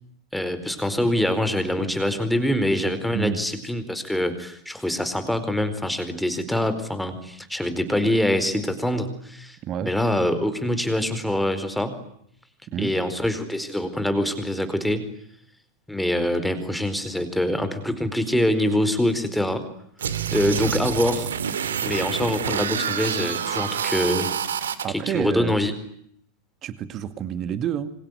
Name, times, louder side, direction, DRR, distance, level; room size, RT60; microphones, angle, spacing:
voice 1, 0.3-12.0 12.8-15.1 15.9-19.6 20.3-21.3 21.8-24.3 24.9-25.7, left 1 dB, ahead, 10 dB, 4.5 m, -24 dB
voice 2, 9.6-9.9 12.7-12.9 20.5-20.6 24.8-25.5 26.6-27.9, right 9 dB, 30° right, 12 dB, 2.2 m, -29 dB
sound 1, 20.0-24.8, right 8 dB, 65° right, 2.3 m, -27 dB
28.0 x 26.0 x 8.2 m, 0.69 s
figure-of-eight pair, 90°, 0 cm